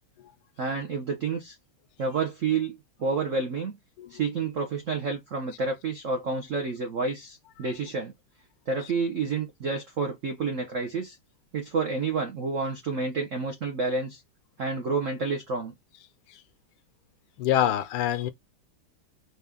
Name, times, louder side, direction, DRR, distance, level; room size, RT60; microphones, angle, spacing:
voice 1, 0.6-1.6 2.0-3.7 4.1-8.1 8.7-11.2 11.5-14.2 14.6-15.7, right 4 dB, 70° right, 0.7 m, -29 dB
voice 2, 17.4-18.3, left 11 dB, 80° left, 1.5 m, -25 dB
4.2 x 2.4 x 3.4 m
omnidirectional pair, 2.4 m